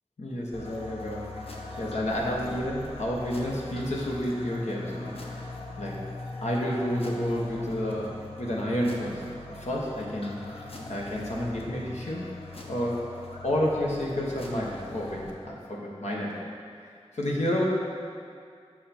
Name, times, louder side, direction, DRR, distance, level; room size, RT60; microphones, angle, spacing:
voice 1, 0.2-6.0 6.4-10.4 10.9-16.4 16.8-17.7, equal, 90° left, -4 dB, 1.3 m, -31 dB
sound 1, 0.5-15.3, left 2 dB, 60° left, 0.9 m, -41 dB
7.5 x 5.8 x 4.4 m, 2.3 s
wide cardioid pair, 45°, 11 cm